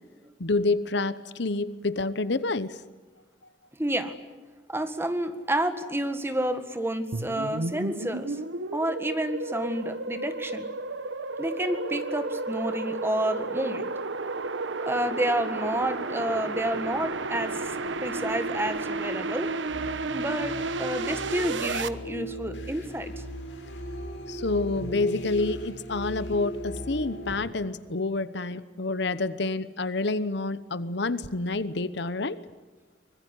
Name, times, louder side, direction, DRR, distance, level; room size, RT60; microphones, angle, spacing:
voice 1, 0.4-2.8 24.3-32.4, left 3 dB, 65° left, 15 dB, 1.0 m, -28 dB
voice 2, 3.8-4.1 4.7-8.4 8.7-10.7 11.4-13.9 14.9-19.5 20.1-23.1, right 1 dB, 15° right, 9 dB, 1.8 m, -30 dB
sound 1, 7.1-21.9, right 3 dB, 80° right, 1.2 m, -32 dB
sound 2, 19.7-27.4, equal, 80° left, 6.8 m, -38 dB
24.5 x 21.0 x 10.0 m, 1.3 s
head